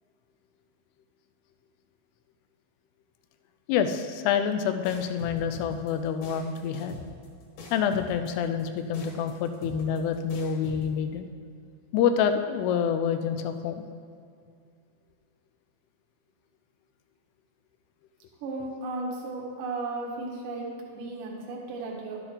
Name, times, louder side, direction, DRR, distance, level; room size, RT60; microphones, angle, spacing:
voice 1, 3.7-7.0 7.7-11.3 11.9-13.9, left 7 dB, 80° left, 8 dB, 2.5 m, -27 dB
sound 1, 4.9-10.9, left 1 dB, 60° left, 3.3 m, -42 dB
voice 2, 18.4-22.2, right 2 dB, 75° right, -2 dB, 3.4 m, -35 dB
12.0 x 8.9 x 3.9 m, 2.3 s
omnidirectional pair, 5.1 m